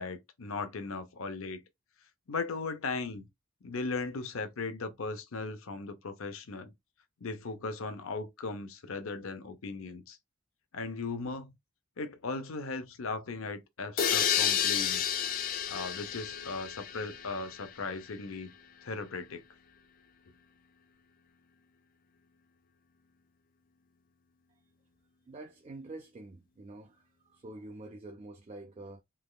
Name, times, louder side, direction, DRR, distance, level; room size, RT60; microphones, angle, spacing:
voice 1, 0.0-1.6 2.3-3.3 3.6-6.7 7.2-10.2 10.7-11.5 12.0-15.2 15.7-18.5 18.8-19.4, left 3 dB, 70° left, 0.7 m, -37 dB
sound 1, 14.0-17.7, left 9 dB, 40° left, 0.4 m, -31 dB
voice 2, 25.3-29.0, right 2 dB, 30° right, 0.3 m, -47 dB
3.4 x 3.1 x 2.3 m
head